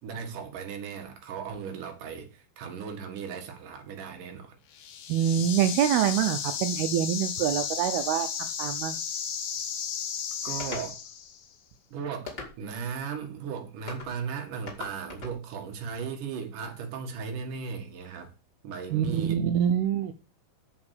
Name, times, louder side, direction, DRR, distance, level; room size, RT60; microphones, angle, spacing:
voice 1, 0.0-4.6 10.4-11.0 11.9-18.3 18.6-19.4, right 6 dB, 60° right, 3.1 m, -37 dB
sound 1, 4.7-11.4, left 8 dB, 75° left, 3.0 m, -34 dB
voice 2, 5.1-9.0 18.9-20.1, right 10 dB, 85° right, 2.6 m, -26 dB
sound 2, 10.6-10.9 12.3-12.8 13.9-14.1 14.7-15.4, left 3 dB, 20° left, 1.6 m, -39 dB
7.9 x 7.1 x 6.6 m
omnidirectional pair, 4.4 m